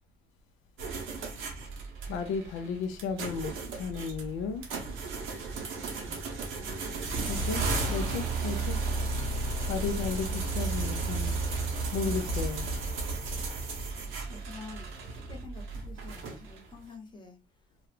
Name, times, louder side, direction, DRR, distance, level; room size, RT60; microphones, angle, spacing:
sound 1, 0.8-16.7, right 3 dB, 85° right, 0.7 m, -34 dB
voice 1, 2.1-4.6 7.3-8.8 9.7-11.4 11.9-12.7, left 5 dB, 85° left, 0.4 m, -34 dB
voice 2, 5.9-6.2 6.6-7.6 14.3-17.4, left 3 dB, 25° left, 0.8 m, -48 dB
2.3 x 2.0 x 3.1 m
cardioid pair, 90°, 20 cm